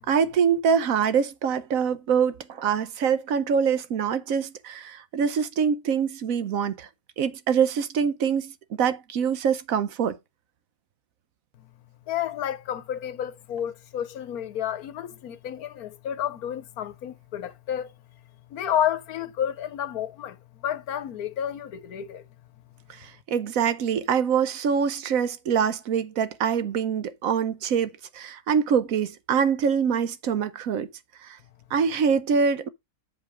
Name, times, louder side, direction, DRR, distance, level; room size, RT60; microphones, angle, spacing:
voice 1, 0.0-6.9 7.2-8.5 8.8-10.2 22.9-30.9 31.2-31.4 31.7-32.7, right 7 dB, 70° right, 1.1 m, -24 dB
voice 2, 12.1-17.9 18.5-22.3, left 10 dB, 75° left, 1.3 m, -30 dB
7.1 x 5.3 x 4.8 m
omnidirectional pair, 1.6 m